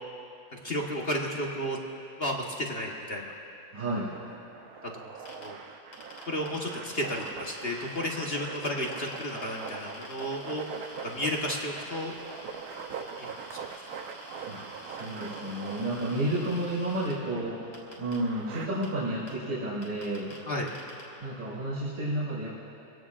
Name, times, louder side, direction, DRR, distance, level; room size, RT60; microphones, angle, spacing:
voice 1, 0.5-1.8 2.2-3.3 5.4-5.6 6.3-10.6 11.0-12.1 13.2-13.6 20.5-20.7, equal, 35° left, -1 dB, 1.1 m, -32 dB
voice 2, 3.7-4.1 14.4-17.6 18.0-20.3 21.2-22.5, right 1 dB, 40° right, -10 dB, 3.4 m, -31 dB
sound 1, 4.0-18.7, right 6 dB, 60° right, 1.0 m, -43 dB
sound 2, 5.3-5.5 5.9-8.0 8.6-17.1 17.7-18.2 18.8-18.9 19.3-19.4 19.8-20.4 20.7-21.0, left 1 dB, 85° left, 4.7 m, -48 dB
25.5 x 17.5 x 2.5 m, 2.7 s
omnidirectional pair, 2.3 m